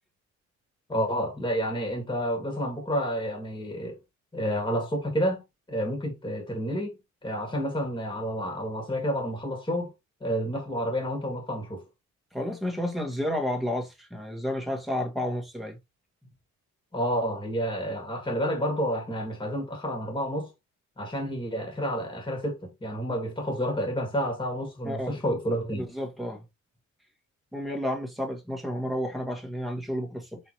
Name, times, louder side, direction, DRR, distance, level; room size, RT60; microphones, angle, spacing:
voice 1, 0.9-4.0 4.3-5.4 5.7-9.9 10.2-11.8 16.9-20.5 21.0-25.9, equal, 15° left, 1.8 m, -30 dB
voice 2, 12.3-15.8 24.8-25.2 25.7-26.4 27.5-30.4, left 1 dB, ahead, 1.4 m, -31 dB
4.4 x 3.7 x 2.9 m
cardioid pair, 90°, 30 cm